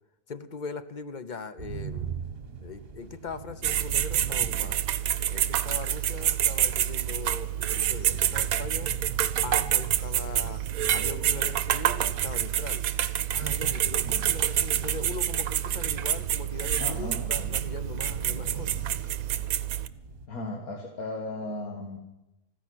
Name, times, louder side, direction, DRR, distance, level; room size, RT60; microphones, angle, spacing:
voice 1, 0.3-2.2 2.6-4.8 5.3-8.9 9.4-10.6 10.9-12.8 13.3-18.8, left 4 dB, 40° left, 11 dB, 0.7 m, -40 dB
sound 1, 1.6-20.3, right 6 dB, 40° right, 1.4 m, -41 dB
sound 2, 3.6-19.9, right 11 dB, 70° right, 1.1 m, -27 dB
voice 2, 16.8-17.5 18.3-18.7 20.3-22.0, left 2 dB, 70° left, 1 dB, 2.1 m, -37 dB
14.5 x 10.5 x 9.3 m, 0.96 s
omnidirectional pair, 1.6 m